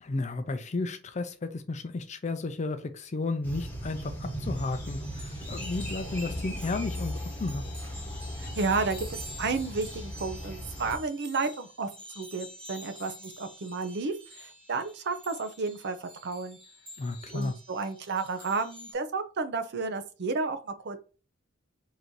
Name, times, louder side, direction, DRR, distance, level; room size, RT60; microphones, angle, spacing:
voice 1, 0.0-7.6 17.0-17.5, left 3 dB, 35° left, 8 dB, 0.4 m, -33 dB
sound 1, 3.4-11.0, equal, 10° left, 1.0 m, -37 dB
sound 2, 4.5-18.9, equal, 30° right, 1.3 m, -48 dB
voice 2, 8.4-11.9 12.2-16.6 17.3-21.0, right 4 dB, 55° right, 9 dB, 0.6 m, -32 dB
3.9 x 2.7 x 4.5 m, 0.36 s
head